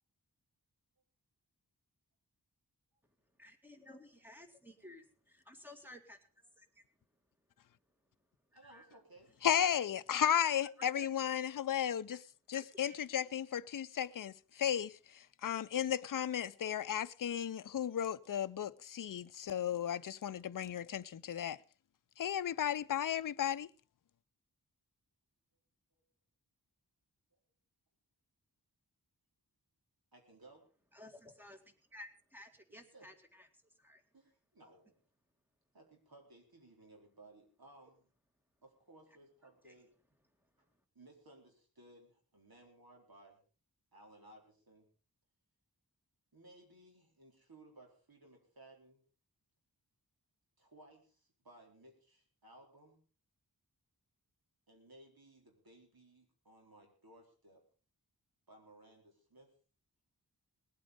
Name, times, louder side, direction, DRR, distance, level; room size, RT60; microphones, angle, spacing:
voice 1, 3.4-6.2 6.6-6.8 8.5-8.9 9.6-9.9 10.1-11.1 12.1-12.2 12.5-13.2 30.9-33.5 33.8-34.0 39.6-39.8, left 1 dB, 5° right, 1.9 m, -55 dB
voice 2, 8.5-9.3 9.7-9.8 16.5-16.6 25.9-26.0 30.1-30.6 32.7-33.1 34.1-35.0 35.7-38.1 38.6-39.9 40.9-43.4 43.9-44.9 46.3-49.0 50.6-53.0 54.7-57.6 58.5-59.5, right 2 dB, 70° right, 4.2 m, -60 dB
voice 3, 9.4-12.2 12.5-14.9 15.4-21.6 22.2-23.7, left 9 dB, 55° left, 0.5 m, -34 dB
19.5 x 8.7 x 5.1 m
wide cardioid pair, 90°, 38 cm